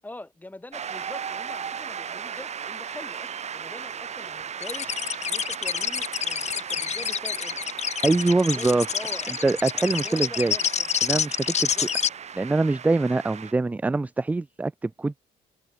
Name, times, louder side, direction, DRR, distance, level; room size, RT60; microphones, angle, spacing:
voice 1, 0.0-5.0 5.3-7.6 8.4-9.6 10.0-10.9 11.6-11.9, left 2 dB, 10° left, 7.6 m, -43 dB
Shout / Cheering / Applause, 0.7-13.5, right 7 dB, 40° right, 4.2 m, -37 dB
sound 1, 4.6-12.1, left 8 dB, 40° left, 1.9 m, -27 dB
voice 2, 8.0-8.9 9.3-10.5 11.0-11.7 12.3-15.2, right 3 dB, 10° right, 0.3 m, -24 dB
open air
cardioid pair, 110°, 17 cm